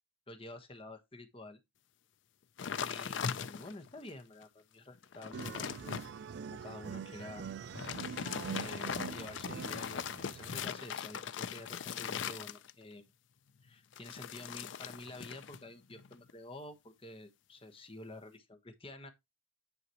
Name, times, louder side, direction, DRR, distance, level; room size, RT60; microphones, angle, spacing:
voice 1, 0.3-1.6 2.7-6.0 6.5-7.5 8.5-13.1 13.6-19.1, left 2 dB, 25° left, 1.1 m, -49 dB
sound 1, 2.6-3.9 4.4-4.5 4.9-6.1 7.6-12.9 13.9-15.6 15.9-16.3, left 7 dB, 60° left, 0.4 m, -40 dB
sound 2, 5.3-10.7, right 6 dB, 55° right, 0.3 m, -44 dB
9.6 x 5.0 x 2.9 m
head